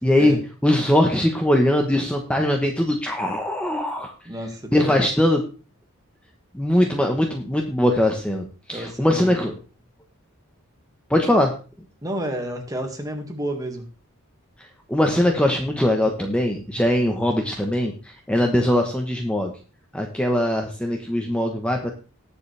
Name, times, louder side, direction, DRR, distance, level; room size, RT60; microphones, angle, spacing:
voice 1, 0.0-0.4 0.6-4.1 4.7-5.4 6.5-8.4 8.7-9.5 11.1-11.5 14.9-17.9 18.3-19.5 19.9-21.9, left 1 dB, 5° left, 1.0 m, -21 dB
voice 2, 4.3-5.0 8.7-9.3 12.0-13.9, equal, 15° right, 1.9 m, -30 dB
19.0 x 7.0 x 3.4 m
head